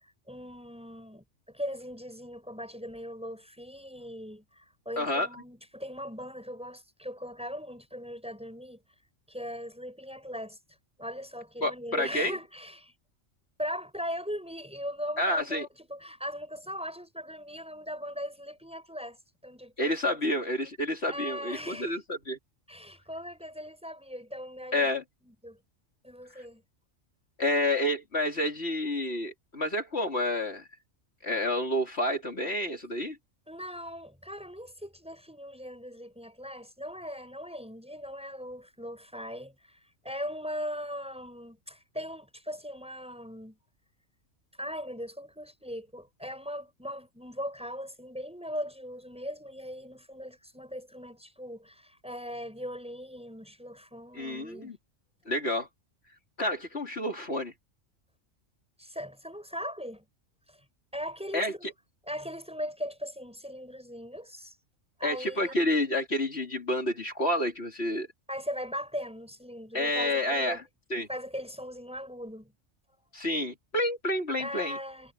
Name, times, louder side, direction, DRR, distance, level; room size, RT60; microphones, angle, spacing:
voice 1, 0.0-8.8 9.3-10.6 11.0-12.9 13.6-19.2 19.4-20.4 21.1-21.9 22.7-24.9 25.2-25.6 26.0-26.6 33.5-43.6 44.6-54.7 58.8-60.1 60.5-60.7 60.9-61.7 62.1-64.6 65.0-65.6 68.3-70.6 71.1-72.5 74.4-75.1, equal, 5° right, 6.9 m, -39 dB
voice 2, 5.0-5.3 11.6-12.4 15.2-15.7 19.8-22.4 24.7-25.0 26.3-26.5 27.4-30.7 31.2-33.2 54.1-54.8 55.3-55.7 56.4-57.5 61.3-61.7 65.0-68.1 69.7-70.6 70.9-71.1 73.1-74.8, left 1 dB, 55° left, 3.5 m, -29 dB
omnidirectional pair, 1.3 m